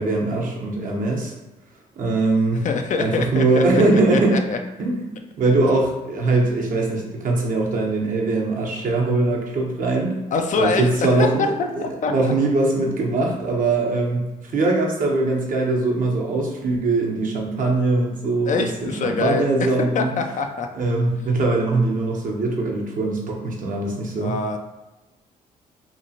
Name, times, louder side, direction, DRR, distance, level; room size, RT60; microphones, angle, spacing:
voice 1, 0.0-1.3 2.0-2.7 3.0-4.4 4.8-10.2 10.6-20.1 20.7-24.3, right 2 dB, 50° right, -1 dB, 0.8 m, -21 dB
voice 2, 2.6-4.6 10.3-10.9 11.2-12.3 18.5-19.7 19.9-20.7 24.2-24.6, left 4 dB, 45° left, 5 dB, 0.4 m, -24 dB
2.9 x 2.4 x 2.7 m, 1.1 s
hypercardioid pair, 50°, 17 cm